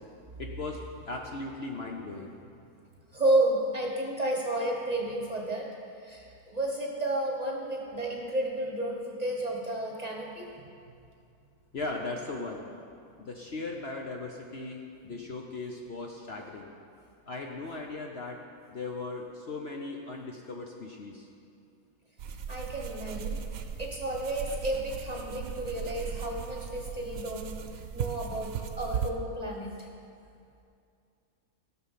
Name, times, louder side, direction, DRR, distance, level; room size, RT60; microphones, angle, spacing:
voice 1, 0.4-0.8 1.1-2.3 11.7-12.6 13.2-16.7 17.3-18.4 18.7-21.3, left 3 dB, 50° left, 0 dB, 0.9 m, -38 dB
voice 2, 3.1-5.7 6.0-10.5 22.5-23.4 23.8-27.6 27.9-28.5 28.8-29.9, right 1 dB, 30° right, -1 dB, 1.2 m, -31 dB
sound 1, 22.2-29.1, right 7 dB, 70° right, 1.1 m, -37 dB
16.0 x 6.3 x 5.7 m, 2.4 s
omnidirectional pair, 1.6 m